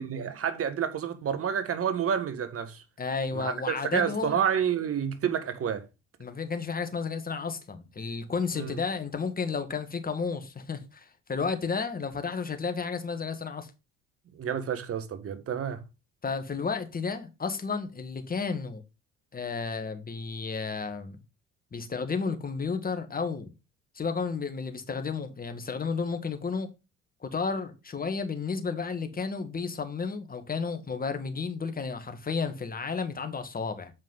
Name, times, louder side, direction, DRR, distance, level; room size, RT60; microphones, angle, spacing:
voice 1, 0.0-2.8 3.3-5.8 8.6-8.8 14.3-15.8, right 8 dB, 45° right, 1.4 m, -29 dB
voice 2, 3.0-4.4 6.2-13.7 16.2-18.8 19.3-21.2 21.7-23.5 23.9-26.7 27.2-33.9, left 5 dB, 25° left, 1.7 m, -32 dB
7.4 x 5.2 x 4.0 m
hypercardioid pair, 60°, 32 cm